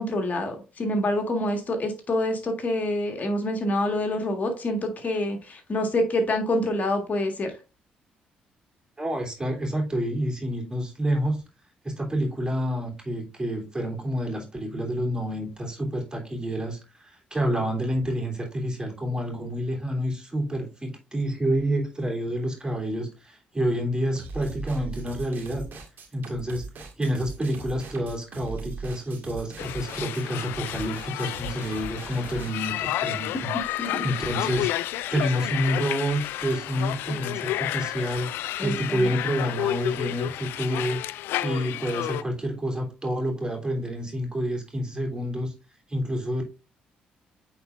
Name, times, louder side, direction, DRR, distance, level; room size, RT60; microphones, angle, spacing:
voice 1, 0.0-7.5 33.8-34.0 38.6-39.1, left 1 dB, 45° left, 5 dB, 1.8 m, -27 dB
voice 2, 9.0-11.4 11.8-25.7 26.1-26.7 27.0-33.5 34.0-34.7 35.1-38.3 38.6-41.0 41.4-45.5 45.9-46.4, equal, 20° right, 0 dB, 3.2 m, -28 dB
sound 1, 24.1-32.5, right 3 dB, 60° right, 1.9 m, -40 dB
sound 2, 29.6-42.2, left 14 dB, 75° left, 0.3 m, -31 dB
8.6 x 4.3 x 2.6 m, 0.30 s
hypercardioid pair, 55°, 4 cm